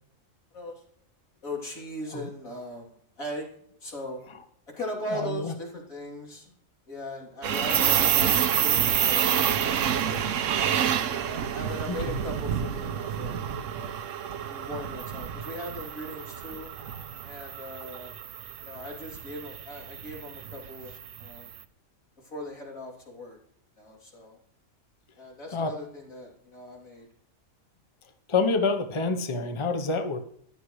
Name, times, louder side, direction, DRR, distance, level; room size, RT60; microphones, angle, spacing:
voice 1, 1.4-3.5 3.8-4.2 4.8-6.5 6.9-10.3 11.0-16.7 17.2-18.2 18.6-20.9 21.2-21.5 22.2-23.4 23.8-24.4 25.2-27.1, left 1 dB, 90° left, -2 dB, 3.8 m, -39 dB
voice 2, 5.1-5.5 11.9-12.2 16.8-17.0 25.5-25.7 28.3-30.2, left 4 dB, 25° left, 7 dB, 0.9 m, -28 dB
sound 1, 7.4-21.5, right 9 dB, 70° right, 1.1 m, -28 dB
15.0 x 11.5 x 3.3 m, 0.67 s
omnidirectional pair, 1.4 m